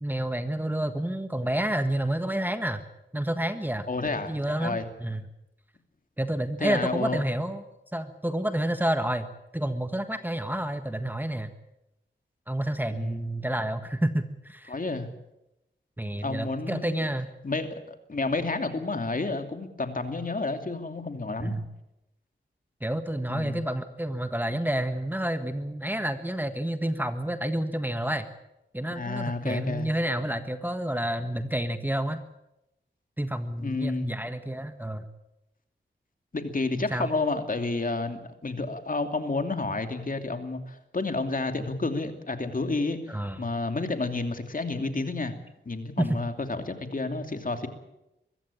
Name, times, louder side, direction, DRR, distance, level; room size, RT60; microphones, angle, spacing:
voice 1, 0.0-2.8 3.1-3.9 4.3-5.2 6.2-7.6 7.9-9.3 9.5-11.5 12.5-14.8 16.0-17.3 21.4-21.7 22.8-28.3 28.7-32.2 33.2-35.1 36.9-37.1 43.1-43.4 46.0-46.2, right 1 dB, 10° right, 9 dB, 1.5 m, -29 dB
voice 2, 3.9-4.8 6.6-7.2 12.9-13.2 14.7-15.1 16.2-17.0 17.4-21.5 23.3-23.6 29.0-29.9 33.6-34.1 36.3-43.0 43.4-45.3 45.7-47.7, left 3 dB, 45° left, 7 dB, 2.7 m, -30 dB
23.5 x 15.0 x 8.7 m, 0.90 s
cardioid pair, 65°, 20 cm